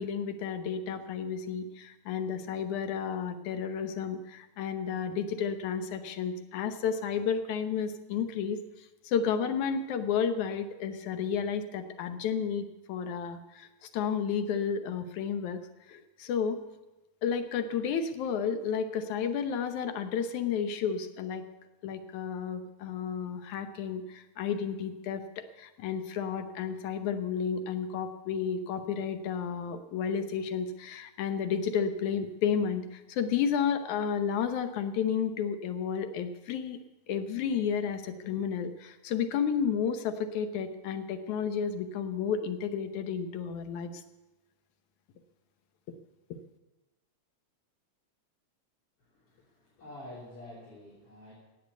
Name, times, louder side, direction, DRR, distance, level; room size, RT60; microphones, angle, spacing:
voice 1, 0.0-8.6 9.0-15.6 15.9-16.6 17.2-21.4 21.8-36.8 37.1-44.0, left 7 dB, 75° left, 9 dB, 2.3 m, -32 dB
voice 2, 49.0-51.3, left 1 dB, 45° left, -6 dB, 4.4 m, -48 dB
16.5 x 8.7 x 8.1 m, 1.0 s
omnidirectional pair, 3.5 m